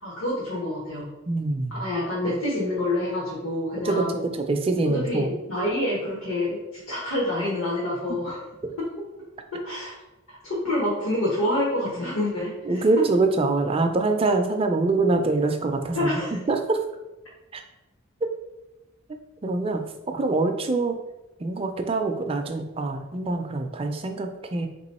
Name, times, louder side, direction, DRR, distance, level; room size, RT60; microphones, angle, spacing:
voice 1, 0.0-1.1 1.8-4.3 4.9-8.4 8.8-8.9 9.5-9.9 10.3-12.8 15.9-16.4, left 1 dB, 85° left, -6 dB, 1.1 m, -27 dB
voice 2, 1.3-1.8 3.8-4.0 4.3-5.3 12.7-16.1 16.5-16.8 17.5-17.6 19.4-19.8 20.1-21.0 21.4-24.7, right 3 dB, 25° right, 5 dB, 0.3 m, -24 dB
3.4 x 3.0 x 4.1 m, 1.0 s
head